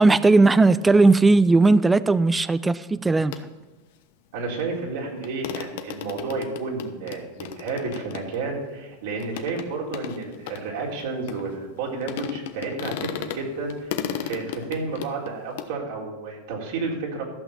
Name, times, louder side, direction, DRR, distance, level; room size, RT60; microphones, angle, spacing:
voice 1, 0.0-3.3, right 3 dB, 10° right, 0.5 m, -17 dB
sound 1, 3.3-3.4 4.6-4.7 4.9-5.0 5.2-11.8 12.1-13.4 13.7-15.7, left 10 dB, 70° left, 1.1 m, -35 dB
voice 2, 4.3-17.2, right 4 dB, 70° right, 3.8 m, -31 dB
14.5 x 6.1 x 7.2 m
supercardioid pair, 125°, 0 cm